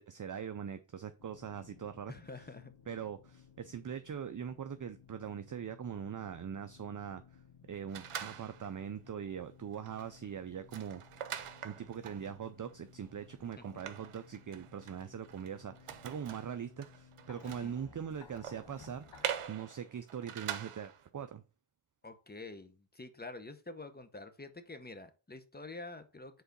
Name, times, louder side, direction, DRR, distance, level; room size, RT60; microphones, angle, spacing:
voice 1, 0.0-2.1 2.9-7.4 7.7-11.0 11.6-21.4, right 8 dB, 40° right, 10 dB, 0.5 m, -42 dB
sound 1, 1.2-19.5, left 7 dB, 60° left, 0.9 m, -59 dB
voice 2, 2.1-2.7 13.4-13.6 17.4-17.7 22.0-26.4, left 2 dB, 20° left, 9 dB, 0.8 m, -48 dB
sound 2, 7.9-8.8 9.3-9.4 9.7-21.1, right 9 dB, 85° right, 0.7 m, -45 dB
4.9 x 3.9 x 5.1 m, 0.34 s
wide cardioid pair, 70°, 50 cm